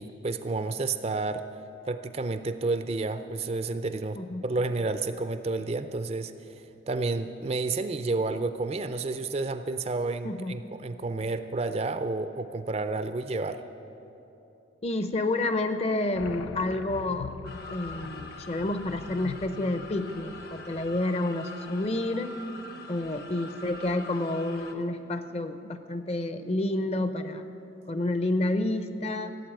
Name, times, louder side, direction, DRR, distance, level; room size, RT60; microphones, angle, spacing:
voice 1, 0.0-1.5 1.9-6.3 6.9-13.6, right 3 dB, 30° right, 10 dB, 0.4 m, -30 dB
voice 2, 10.2-10.6 14.8-17.4 17.7-22.4 22.9-27.4 27.9-29.4, left 2 dB, 30° left, 10 dB, 0.6 m, -29 dB
sound 1, 16.1-21.4, left 6 dB, 80° left, 0.3 m, -43 dB
sound 2, 17.4-24.7, left 3 dB, 50° left, 1.0 m, -44 dB
16.0 x 8.0 x 9.1 m, 3.0 s
head